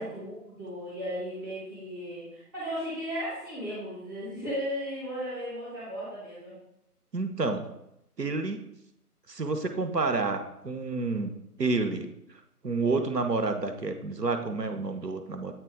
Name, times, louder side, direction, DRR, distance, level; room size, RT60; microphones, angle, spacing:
voice 1, 0.0-6.5 12.8-13.0, equal, 15° right, -10 dB, 1.3 m, -36 dB
voice 2, 7.1-7.7 8.2-8.6 9.3-11.3 11.6-12.1 12.6-15.5, right 3 dB, 85° right, 7 dB, 1.0 m, -29 dB
8.5 x 3.1 x 4.9 m, 0.81 s
figure-of-eight pair, 150°, 47 cm